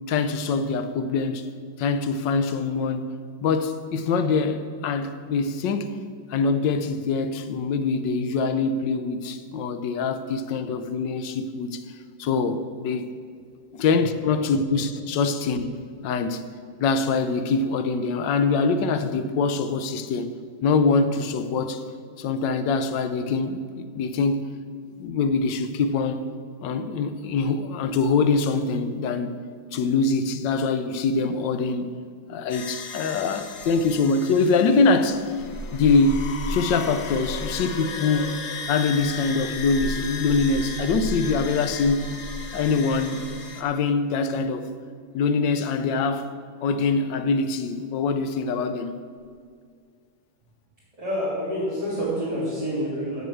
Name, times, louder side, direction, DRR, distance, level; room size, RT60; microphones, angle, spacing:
voice 1, 0.1-1.5 1.8-3.1 3.4-6.0 6.3-11.8 12.2-13.0 13.7-15.7 16.0-16.5 16.8-20.3 20.6-21.9 22.2-24.5 25.0-26.2 26.6-29.4 29.7-31.9 32.3-35.3 35.7-36.2 36.5-38.4 38.7-42.1 42.5-43.2 43.6-44.7 45.1-46.3 46.6-49.0, left 4 dB, 70° left, 1.3 m, -24 dB
sound 1, 32.5-43.6, left 2 dB, 50° left, 0.9 m, -34 dB
voice 2, 51.0-53.2, equal, 15° right, 3.5 m, -27 dB
8.2 x 7.7 x 7.7 m
omnidirectional pair, 2.2 m